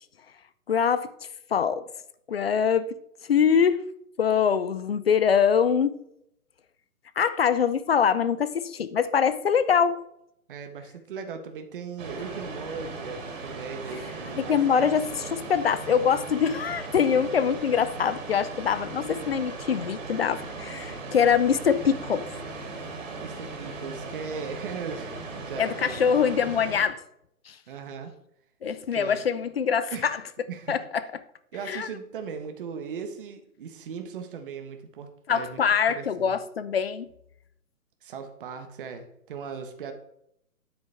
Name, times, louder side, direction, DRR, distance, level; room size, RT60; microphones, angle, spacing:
voice 1, 0.7-1.1 1.5-1.8 2.3-2.9 3.3-3.8 4.2-6.0 7.2-10.1 14.3-22.3 25.6-27.0 27.5-27.6 28.6-30.2 30.7-30.8 31.7-31.9 35.3-37.1, left 7 dB, 45° left, 0.5 m, -24 dB
voice 2, 10.5-15.3 23.2-26.2 27.7-28.1 28.9-29.2 29.9-30.2 30.5-30.8 31.5-35.6 35.9-36.3 38.0-39.9, right 6 dB, 35° right, 1.2 m, -38 dB
sound 1, 12.0-26.8, right 3 dB, 55° right, 3.0 m, -38 dB
9.6 x 8.0 x 3.4 m
hypercardioid pair, 150°, 45 cm